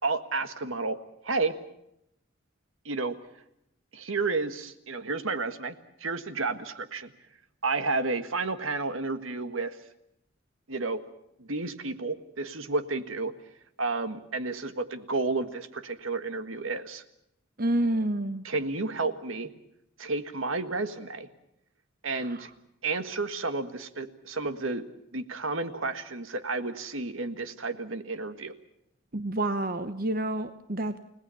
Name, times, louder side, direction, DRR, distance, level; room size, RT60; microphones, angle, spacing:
voice 1, 0.0-1.0 1.2-1.5 2.8-3.1 3.9-5.7 6.0-7.1 7.6-9.8 10.7-11.0 11.4-13.3 13.8-17.0 18.4-19.5 20.0-21.3 22.0-22.5 22.8-24.8 25.1-28.5, right 3 dB, 75° right, 10 dB, 1.7 m, -31 dB
voice 2, 17.6-18.4 22.2-22.4 29.1-31.0, right 1 dB, 45° right, 10 dB, 1.0 m, -29 dB
30.0 x 18.5 x 7.0 m, 0.80 s
head